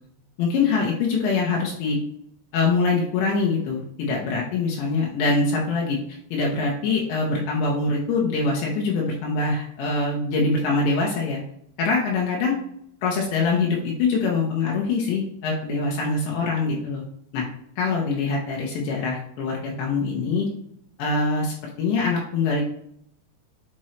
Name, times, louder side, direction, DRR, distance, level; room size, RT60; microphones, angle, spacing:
voice 1, 0.4-2.0 2.5-11.4 11.8-12.6 13.0-17.0 17.3-17.4 17.8-20.5 21.0-22.6, left 4 dB, 80° left, -2 dB, 3.4 m, -24 dB
10.0 x 5.3 x 3.2 m, 0.71 s
omnidirectional pair, 5.1 m